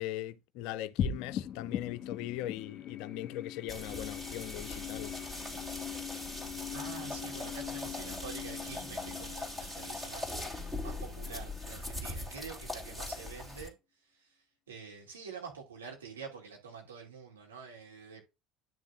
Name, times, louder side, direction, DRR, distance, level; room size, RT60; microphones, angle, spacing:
voice 1, 0.0-5.2, left 14 dB, 60° left, 0.5 m, -40 dB
sound 1, 1.0-11.6, left 9 dB, 40° left, 1.8 m, -41 dB
sound 2, 3.7-13.7, left 2 dB, 10° right, 3.3 m, -41 dB
voice 2, 6.7-13.7 14.1-14.3 14.7-18.2, right 6 dB, 80° right, 2.6 m, -47 dB
10.5 x 6.3 x 2.6 m
figure-of-eight pair, 65°, 0 cm